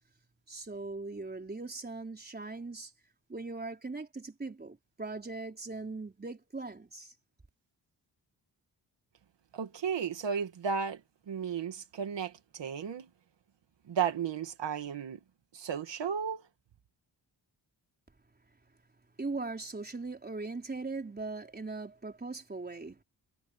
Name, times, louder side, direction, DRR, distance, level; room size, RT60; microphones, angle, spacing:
voice 1, 0.5-2.9 3.3-7.1 19.2-23.0, right 3 dB, 20° right, 4.2 m, -40 dB
voice 2, 9.5-11.0 11.3-13.1 13.9-15.2 15.5-16.4, right 7 dB, 85° right, 2.2 m, -34 dB
wide cardioid pair, 155°, 42 cm